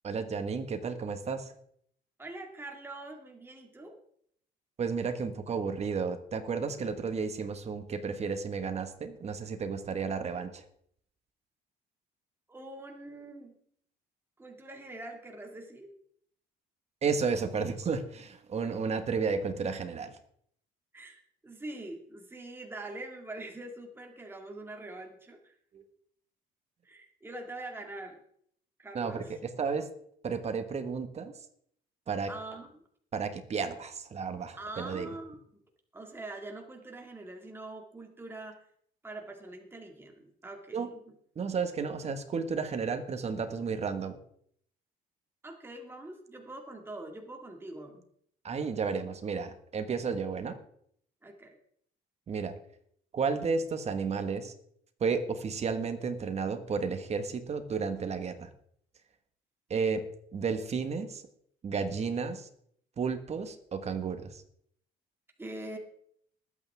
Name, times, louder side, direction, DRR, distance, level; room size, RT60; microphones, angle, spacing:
voice 1, 0.0-1.5 4.8-10.6 17.0-20.2 25.7-25.8 28.9-29.9 30.2-31.3 32.1-32.3 33.1-35.1 40.7-40.9 41.3-44.2 48.4-50.5 52.3-52.5 53.1-54.5 55.0-58.5 59.7-60.0 60.3-61.2 61.6-62.5 63.0-64.4, right 5 dB, 40° right, 8 dB, 1.6 m, -32 dB
voice 2, 2.2-4.0 12.5-13.6 14.4-15.9 20.9-25.5 26.8-28.2 28.8-29.4 32.3-32.8 34.6-35.4 35.9-38.7 39.0-41.2 45.4-48.1 51.2-51.6 65.4-65.8, right 2 dB, 15° right, 2 dB, 2.1 m, -44 dB
20.5 x 8.6 x 3.6 m, 0.66 s
cardioid pair, 110°, 17 cm